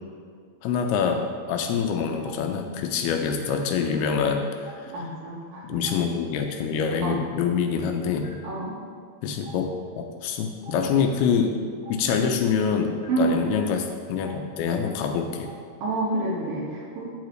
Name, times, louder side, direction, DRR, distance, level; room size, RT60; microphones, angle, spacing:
voice 1, 0.6-4.5 5.7-8.3 9.2-11.6 11.9-15.5, left 6 dB, 80° left, 4 dB, 2.6 m, -25 dB
Stream, 2.2-2.3 3.4-3.5 4.6-4.7 5.8-5.9 7.0-7.1 8.2-8.3 9.4-9.5 10.6-10.7 11.8-11.9 13.0-13.1 14.2-14.3 15.4-15.5, right 2 dB, 20° right, 0.5 m, -47 dB
voice 2, 4.9-5.7 7.0-7.2 8.4-8.8 13.1-13.4 15.8-17.1, right 3 dB, 65° right, -5 dB, 3.2 m, -28 dB
14.0 x 4.9 x 3.2 m, 2.2 s
omnidirectional pair, 4.5 m